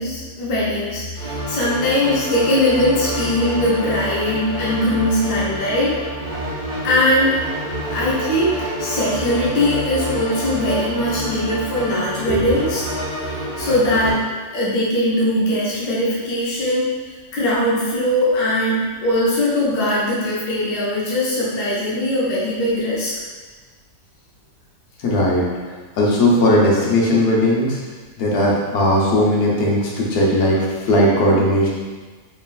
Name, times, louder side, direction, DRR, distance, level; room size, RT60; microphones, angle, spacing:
voice 1, 0.0-5.9 6.8-7.4 7.9-12.9 13.6-14.3 14.5-16.9 17.3-23.1, left 1 dB, 80° left, -7 dB, 1.5 m, -20 dB
sound 1, 1.2-14.1, equal, 10° right, 1.4 m, -28 dB
voice 2, 25.0-25.4 26.0-27.8 28.2-31.7, left 1 dB, 60° left, -4 dB, 1.3 m, -17 dB
4.6 x 3.0 x 2.4 m, 1.4 s
omnidirectional pair, 1.9 m